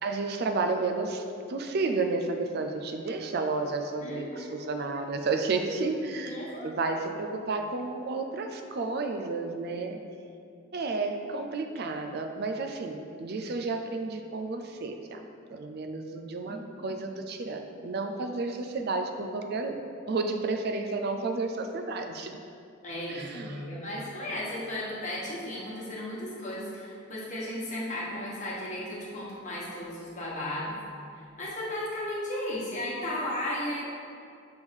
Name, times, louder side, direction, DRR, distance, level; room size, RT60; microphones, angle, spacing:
voice 1, 0.0-10.0 10.7-15.2 15.5-19.8 20.1-22.3 23.1-23.7, right 3 dB, 55° right, 5 dB, 0.4 m, -31 dB
voice 2, 4.0-4.7 6.2-6.8 16.5-16.6 22.8-30.7 31.1-33.8, left 1 dB, 35° left, -6 dB, 1.4 m, -35 dB
6.3 x 3.5 x 5.2 m, 2.5 s
head